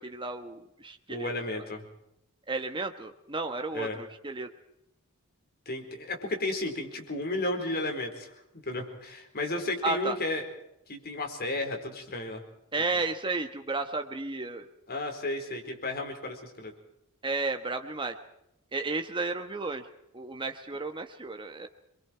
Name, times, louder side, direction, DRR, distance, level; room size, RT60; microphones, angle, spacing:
voice 1, 0.0-1.3 2.5-4.5 9.8-10.2 12.7-14.7 17.2-18.2 18.7-19.9 20.1-21.7, right 3 dB, 20° right, 5 dB, 1.2 m, -33 dB
voice 2, 1.1-1.8 3.7-4.0 5.7-8.3 8.7-10.4 10.9-12.4 14.9-16.7, left 2 dB, 45° left, 4 dB, 4.4 m, -33 dB
27.5 x 23.0 x 4.6 m, 0.81 s
head